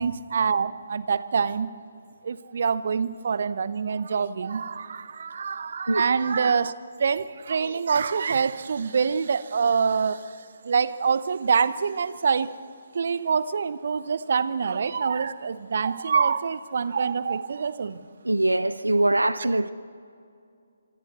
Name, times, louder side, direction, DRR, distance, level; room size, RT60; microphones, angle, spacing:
voice 1, 0.0-1.7 2.2-6.7 7.0-12.6 12.9-18.1, right 6 dB, 50° right, 0.8 m, -25 dB
voice 2, 18.2-19.7, right 2 dB, 80° right, 0.6 m, -22 dB
26.5 x 25.5 x 4.2 m
figure-of-eight pair, 140°, 0 cm